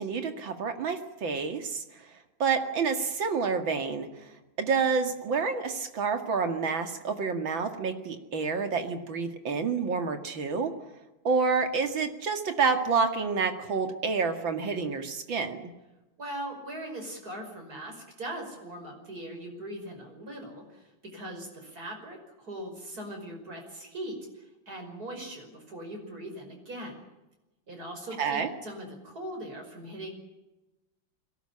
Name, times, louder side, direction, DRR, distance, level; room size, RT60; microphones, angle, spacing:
voice 1, 0.0-1.8 2.4-4.1 4.6-10.7 11.2-15.7 28.2-28.5, right 5 dB, 75° right, 6 dB, 2.9 m, -28 dB
voice 2, 16.2-27.0 27.7-30.1, right 1 dB, 50° right, 3 dB, 6.1 m, -40 dB
22.0 x 18.0 x 9.9 m, 1.0 s
omnidirectional pair, 2.1 m